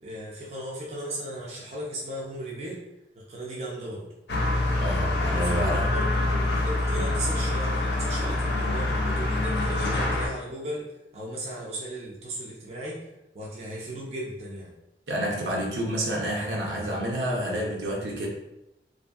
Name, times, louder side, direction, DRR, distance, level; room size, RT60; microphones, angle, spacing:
voice 1, 0.0-2.8 3.2-4.1 5.3-13.1 13.3-14.7, right 1 dB, 40° right, -4 dB, 0.4 m, -36 dB
sound 1, 4.3-10.3, left 2 dB, 70° left, 0.6 m, -25 dB
voice 2, 4.8-5.9 6.9-7.1 15.1-18.3, equal, 80° right, -2 dB, 0.7 m, -29 dB
2.6 x 2.5 x 2.3 m, 0.88 s
head